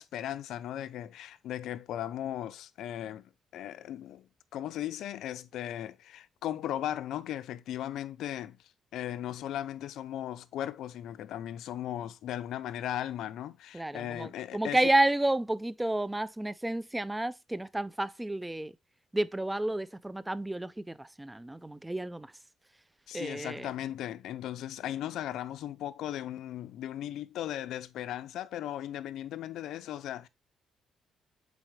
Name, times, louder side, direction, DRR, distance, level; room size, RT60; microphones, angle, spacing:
voice 1, 0.0-14.8 23.1-30.3, left 12 dB, 80° left, 0.5 m, -37 dB
voice 2, 13.7-18.7 19.1-22.3 23.1-23.7, right 1 dB, 10° right, 0.4 m, -30 dB
8.3 x 4.1 x 3.2 m
cardioid pair, 90°, 0 cm